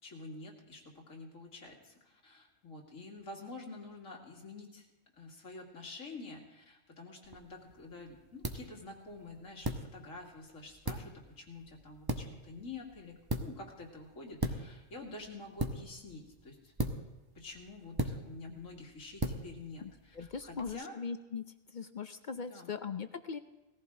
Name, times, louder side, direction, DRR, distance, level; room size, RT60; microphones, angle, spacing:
voice 1, 0.0-4.9 5.1-16.7 17.3-20.9 22.3-22.7, left 3 dB, 85° left, 0 dB, 2.6 m, -48 dB
sound 1, 7.2-20.7, right 1 dB, 20° right, 0.8 m, -40 dB
voice 2, 19.8-23.4, left 5 dB, 50° left, 10 dB, 0.6 m, -40 dB
19.0 x 14.5 x 3.7 m, 1.0 s
omnidirectional pair, 1.3 m